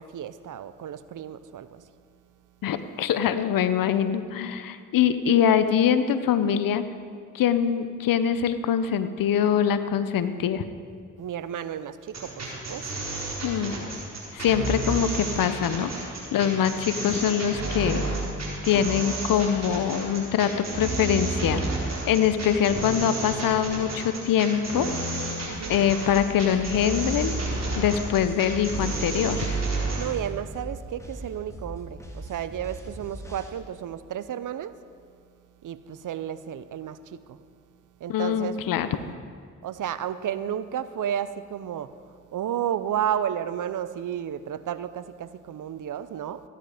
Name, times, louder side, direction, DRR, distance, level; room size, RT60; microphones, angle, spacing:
voice 1, 0.0-1.8 11.2-12.9 25.5-25.8 30.0-34.8 35.6-37.4 38.0-38.6 39.6-41.9 42.3-46.4, right 10 dB, 65° right, 14 dB, 0.7 m, -32 dB
voice 2, 2.6-6.8 7.3-10.6 13.4-13.7 14.3-15.9 16.3-18.0 18.6-21.6 22.0-24.9 25.7-27.4 27.8-29.5 38.1-38.9, left 9 dB, 80° left, 12 dB, 0.8 m, -23 dB
sound 1, 12.1-30.1, right 2 dB, 50° right, 4.3 m, -31 dB
sound 2, 25.5-33.5, right 1 dB, 10° left, 2.7 m, -40 dB
15.5 x 10.0 x 5.0 m, 2.1 s
supercardioid pair, 45°, 34 cm